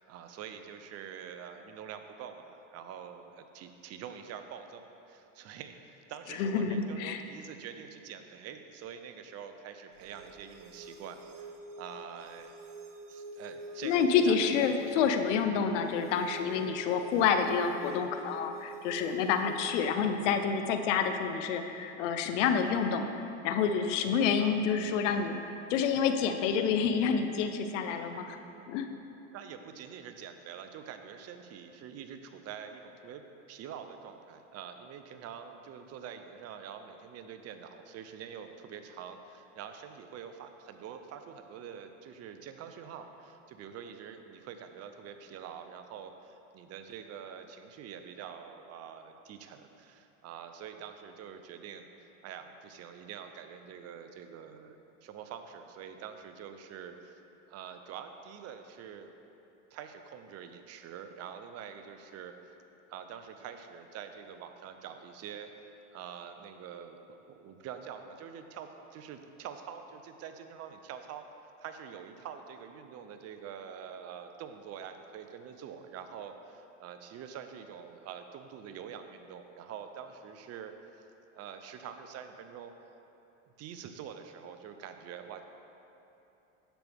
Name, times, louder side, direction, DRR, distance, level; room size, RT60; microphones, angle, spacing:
voice 1, 0.1-12.6 13.1-14.9 24.4-24.6 29.3-33.2 33.5-54.8 55.0-57.2 57.5-59.1 59.7-62.3 62.9-65.5 65.9-71.3 71.6-80.7 81.3-82.7 83.6-85.4, right 8 dB, 45° right, 7 dB, 0.7 m, -46 dB
voice 2, 6.3-7.2 13.8-23.1 23.4-25.4 25.7-28.4 28.7-28.8, left 6 dB, 75° left, 7 dB, 0.8 m, -28 dB
sound 1, 9.9-19.9, right 3 dB, 85° right, 0.8 m, -47 dB
10.0 x 7.3 x 3.5 m, 2.9 s
supercardioid pair, 105°, 36 cm